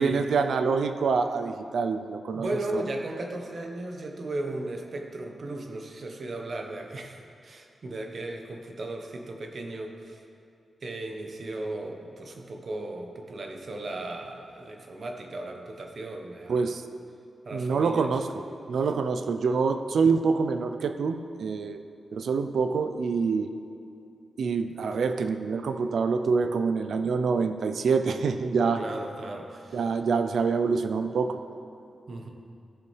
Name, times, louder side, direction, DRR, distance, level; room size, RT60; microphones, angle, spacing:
voice 1, 0.0-2.8 16.5-16.8 17.5-18.4 18.7-21.8 22.1-23.5 24.4-28.8 29.7-31.4, right 5 dB, 80° right, 8 dB, 0.5 m, -26 dB
voice 2, 2.3-10.2 10.8-16.7 17.4-18.2 28.8-29.8 32.1-32.3, right 2 dB, 60° right, 3 dB, 1.2 m, -36 dB
15.0 x 6.9 x 3.3 m, 2.5 s
cardioid pair, 65°, 0 cm